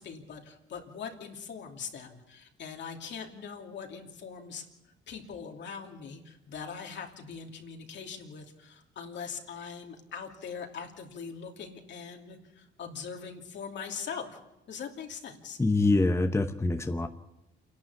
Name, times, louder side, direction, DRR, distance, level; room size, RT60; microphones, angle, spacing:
voice 1, 0.0-4.6 5.1-14.4 14.7-15.6, left 6 dB, 65° left, 3 dB, 2.9 m, -41 dB
voice 2, 15.6-17.1, left 2 dB, 15° left, 7 dB, 1.0 m, -25 dB
28.5 x 11.5 x 8.5 m, 0.89 s
cardioid pair, 90°, 20 cm